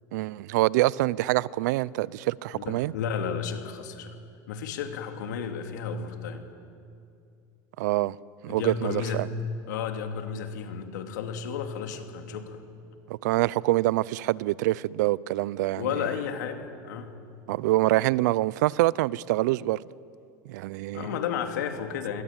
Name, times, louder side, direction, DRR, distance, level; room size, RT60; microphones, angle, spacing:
voice 1, 0.1-2.9 7.8-8.2 8.4-9.3 13.1-15.9 17.5-19.8 20.5-21.1, right 18 dB, 80° right, 0.6 m, -25 dB
voice 2, 2.5-4.1 4.5-6.5 8.5-9.3 9.7-12.6 15.7-17.2 20.9-22.2, left 7 dB, 90° left, 2.9 m, -33 dB
29.0 x 21.5 x 9.0 m
supercardioid pair, 115°, 9 cm